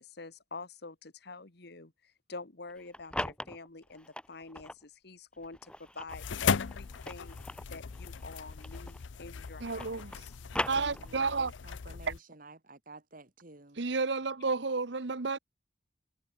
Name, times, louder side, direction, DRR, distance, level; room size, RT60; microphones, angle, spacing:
voice 1, 0.0-7.4 7.7-10.3, left 3 dB, 60° left, 1.6 m, -47 dB
sound 1, 2.7-4.8 5.4-9.2 9.4-11.4, left 1 dB, 5° left, 2.3 m, -40 dB
sound 2, 6.1-12.2, left 6 dB, 85° left, 0.6 m, -37 dB
voice 2, 9.6-10.1 10.7-11.5 13.8-15.4, right 4 dB, 70° right, 1.0 m, -31 dB
voice 3, 10.8-13.8, right 2 dB, 50° right, 2.6 m, -53 dB
head